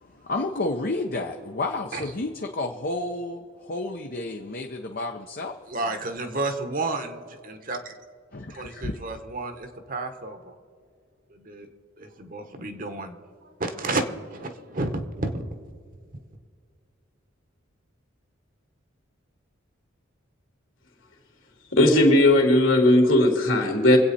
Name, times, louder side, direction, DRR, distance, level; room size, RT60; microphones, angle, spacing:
voice 1, 0.0-5.6 8.3-9.0, left 2 dB, 45° left, 3 dB, 0.8 m, -31 dB
voice 2, 5.7-8.0 8.5-10.5 11.3-11.7 12.0-14.0 14.3-15.4 16.1-16.2, right 2 dB, 40° right, 7 dB, 1.2 m, -31 dB
voice 3, 21.7-24.0, left 1 dB, 70° left, 2 dB, 2.8 m, -17 dB
24.5 x 8.6 x 4.2 m, 2.1 s
head